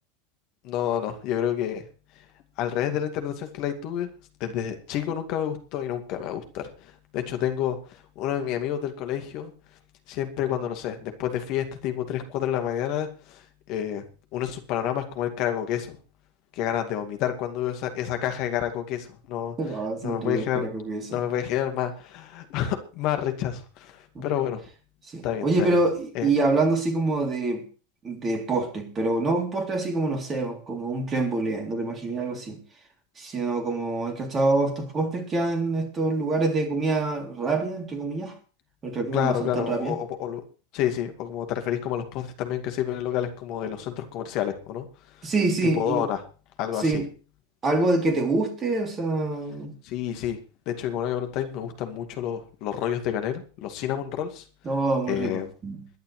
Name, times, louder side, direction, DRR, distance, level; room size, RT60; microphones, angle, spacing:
voice 1, 0.6-1.9 2.6-4.1 4.4-9.5 10.1-13.4 13.7-14.0 14.3-16.0 16.6-19.6 20.0-20.7 21.1-24.6 25.2-25.8 26.1-26.3 39.1-40.4 40.7-44.9 45.7-46.2 46.6-47.0 49.8-50.4 50.7-54.4 55.1-55.5, left 10 dB, 45° left, 2.3 m, -29 dB
voice 2, 19.6-21.2 24.1-24.3 25.1-27.6 28.0-32.6 33.2-38.3 38.8-40.0 45.2-46.1 46.8-47.1 47.6-49.8 54.6-55.9, right 2 dB, 25° right, 3.3 m, -26 dB
22.0 x 10.5 x 3.3 m
figure-of-eight pair, 85°, 0 cm